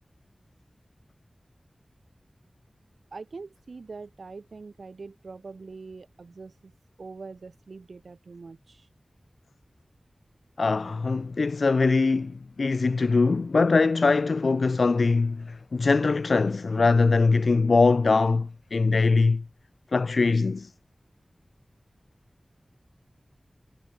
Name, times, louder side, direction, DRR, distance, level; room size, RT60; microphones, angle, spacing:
voice 1, 3.1-8.9, right 4 dB, 85° right, 5.6 m, -43 dB
voice 2, 10.6-19.4 19.9-20.7, left 4 dB, 80° left, 0.5 m, -22 dB
wide cardioid pair, 70°, 0 cm